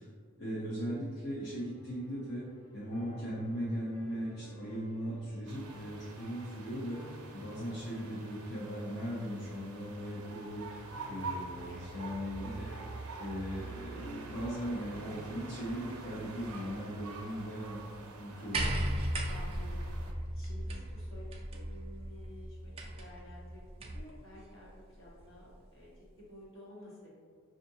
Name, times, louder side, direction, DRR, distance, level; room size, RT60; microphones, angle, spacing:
voice 1, 0.4-2.4 2.7-7.0 7.3-12.7 13.2-18.9, equal, 45° left, -9 dB, 0.7 m, -38 dB
sound 1, 1.4-16.8, equal, 85° left, 1.1 m, -55 dB
sound 2, 5.5-20.1, right 3 dB, 85° right, 0.5 m, -46 dB
voice 2, 11.7-12.0 12.6-13.0 19.3-27.1, left 1 dB, 65° left, -6 dB, 1.2 m, -53 dB
sound 3, 18.5-24.1 25.2-25.3, right 1 dB, 25° right, 0.3 m, -36 dB
5.3 x 2.5 x 2.7 m, 2.1 s
head